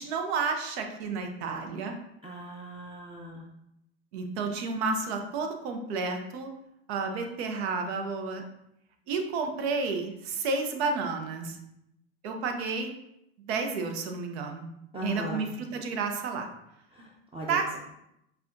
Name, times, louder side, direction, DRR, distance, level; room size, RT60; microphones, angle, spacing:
voice 1, 0.0-1.9 4.1-6.5 6.9-8.4 9.1-11.6 12.2-12.9 13.5-14.7 15.0-16.5 17.5-17.8, right 4 dB, 80° right, 4 dB, 0.7 m, -31 dB
voice 2, 2.2-3.4 14.9-15.4 16.9-17.8, equal, 15° right, -3 dB, 0.6 m, -39 dB
5.4 x 2.3 x 2.5 m, 0.82 s
supercardioid pair, 100°, 32 cm